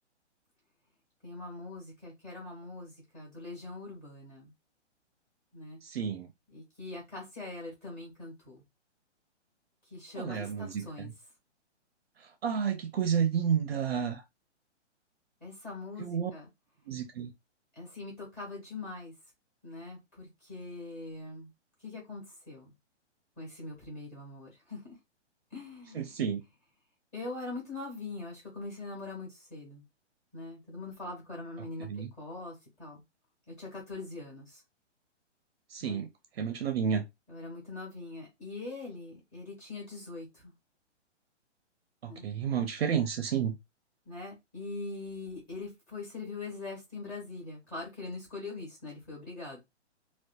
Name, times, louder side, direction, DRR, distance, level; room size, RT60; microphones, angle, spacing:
voice 1, 1.2-4.5 5.5-5.8 6.5-8.6 9.9-11.1 15.4-16.4 17.7-19.1 19.6-21.5 21.8-22.7 23.4-25.0 25.5-26.2 27.1-29.8 30.3-31.9 32.2-33.0 33.5-34.6 35.8-36.0 37.3-40.5 42.1-42.3 44.0-49.6, left 3 dB, 20° left, 1.2 m, -42 dB
voice 2, 5.8-6.3 10.2-11.1 12.4-14.2 16.0-16.3 16.9-17.3 25.9-26.4 31.9-32.1 35.7-36.1 36.4-37.0 42.0-43.6, right 7 dB, 55° right, 0.4 m, -31 dB
2.6 x 2.2 x 2.3 m
hypercardioid pair, 160°, 36 cm